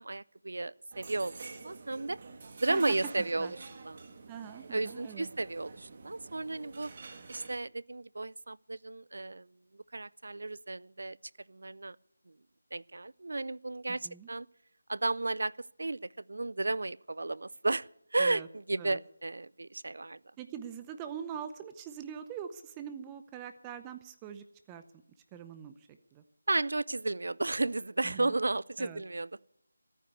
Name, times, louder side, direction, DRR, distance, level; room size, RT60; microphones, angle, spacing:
voice 1, 0.0-2.2 2.6-3.6 3.8-4.0 4.7-6.9 7.3-9.5 9.7-11.2 11.5-12.0 12.7-14.5 14.9-15.5 15.8-20.2 26.5-29.3, right 2 dB, 70° right, 0.5 m, -33 dB
sound 1, 0.9-7.6, right 4 dB, 40° right, 1.6 m, -48 dB
voice 2, 3.2-3.5 4.3-5.3 13.9-14.3 18.2-18.5 18.8-19.0 20.4-24.8 25.3-26.2 28.0-28.3 28.8-29.0, right 8 dB, 15° right, 0.6 m, -43 dB
14.5 x 9.5 x 8.0 m
figure-of-eight pair, 165°, 0 cm